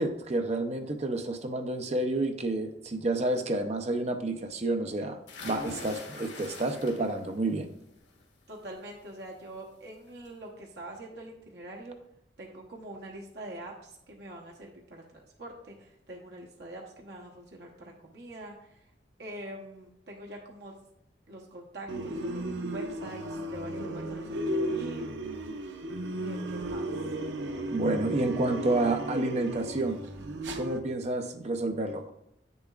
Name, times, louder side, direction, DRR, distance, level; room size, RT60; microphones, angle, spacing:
voice 1, 0.0-7.7 27.7-30.0 30.5-32.1, right 2 dB, 35° right, 6 dB, 0.6 m, -29 dB
sound 1, 5.3-7.4 7.8-8.2 9.6-9.7 10.1-10.2, left 3 dB, 80° left, 1.5 m, -43 dB
voice 2, 5.5-6.0 8.5-12.0 12.4-18.8 19.2-20.7 21.3-25.1 26.2-26.9, right 1 dB, 65° right, -1 dB, 1.0 m, -44 dB
sound 2, 21.9-30.8, right 1 dB, 85° right, 0.6 m, -35 dB
7.9 x 6.9 x 2.4 m, 0.79 s
head